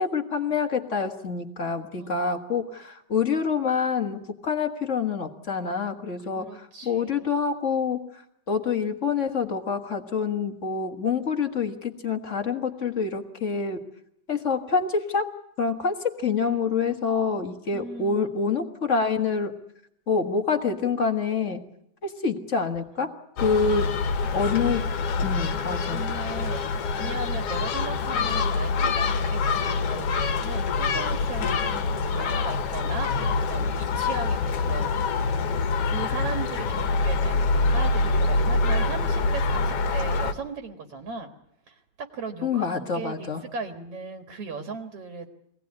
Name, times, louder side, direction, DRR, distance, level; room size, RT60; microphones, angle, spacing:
voice 1, 0.0-8.2 8.5-13.8 14.3-15.3 15.6-19.5 20.1-21.6 22.0-23.1 23.4-23.9 24.3-24.9 25.2-26.0 42.4-43.4, left 5 dB, 35° left, 5 dB, 1.2 m, -26 dB
voice 2, 6.3-7.3 17.7-18.3 25.9-35.4 35.9-41.3 41.7-45.3, right 4 dB, 55° right, 5 dB, 2.4 m, -37 dB
Gull seagull, 23.4-40.3, left 4 dB, 60° left, 2.0 m, -25 dB
24.0 x 18.5 x 9.7 m, 0.76 s
omnidirectional pair, 3.4 m